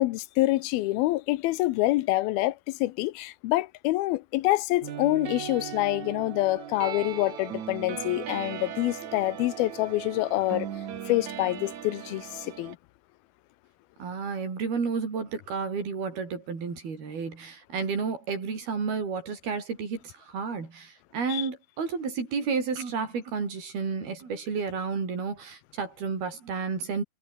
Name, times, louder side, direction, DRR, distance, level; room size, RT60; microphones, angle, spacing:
voice 1, 0.0-10.7 11.1-12.8 21.3-21.5, left 18 dB, 85° left, 2.7 m, -26 dB
sound 1, 4.8-12.8, right 9 dB, 55° right, 3.0 m, -38 dB
voice 2, 14.0-27.0, right 5 dB, 85° right, 7.7 m, -31 dB
omnidirectional pair, 4.3 m